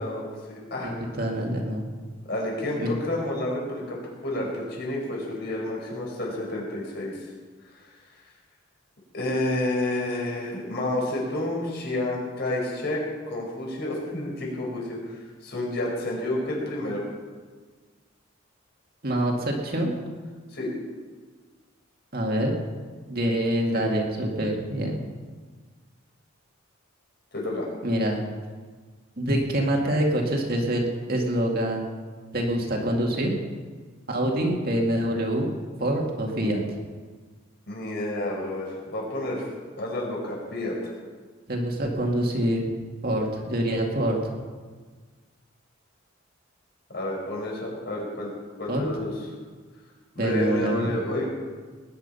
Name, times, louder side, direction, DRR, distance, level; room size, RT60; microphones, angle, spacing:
voice 1, 0.0-0.9 2.2-7.2 7.7-7.8 9.1-17.0 20.5-20.7 23.7-24.0 27.3-27.7 37.7-39.4 39.8-40.9 46.9-48.3 48.6-49.1 50.2-51.3, left 1 dB, 55° left, -3 dB, 5.2 m, -30 dB
voice 2, 0.8-1.8 2.8-2.9 19.0-19.9 22.1-22.6 23.1-25.0 27.8-28.2 29.2-31.8 32.3-33.4 34.1-36.6 41.5-42.7 43.0-44.2 48.7-48.8 50.2-50.9, right 1 dB, 50° right, 0 dB, 2.3 m, -25 dB
20.0 x 10.5 x 5.7 m, 1.5 s
head